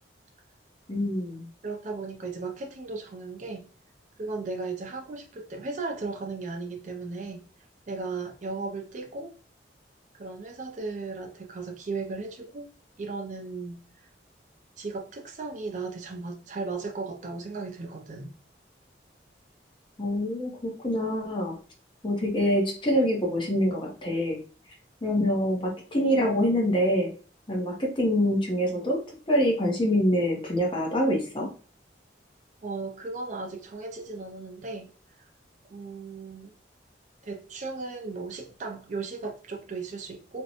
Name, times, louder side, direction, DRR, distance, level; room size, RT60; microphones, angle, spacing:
voice 1, 0.9-1.5 20.0-21.5 22.0-24.4 25.0-27.1 27.5-29.0 29.3-31.5, equal, 25° left, 0 dB, 0.7 m, -25 dB
voice 2, 1.6-3.7 4.2-7.5 7.9-9.3 10.1-12.7 13.0-13.8 14.8-18.3 32.6-34.9 35.2-35.3 35.7-36.5 37.2-40.4, right 3 dB, 40° right, 3 dB, 0.4 m, -36 dB
2.6 x 2.1 x 2.8 m, 0.39 s
head